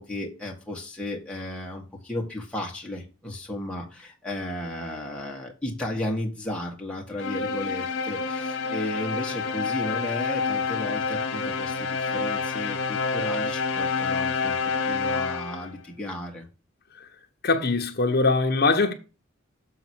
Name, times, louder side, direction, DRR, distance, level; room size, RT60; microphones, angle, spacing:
voice 1, 0.0-16.5, left 1 dB, 5° left, 1.7 m, -34 dB
sound 1, 7.2-15.7, left 4 dB, 90° left, 0.9 m, -28 dB
voice 2, 17.4-18.9, left 3 dB, 50° left, 1.2 m, -22 dB
7.1 x 3.9 x 6.1 m
head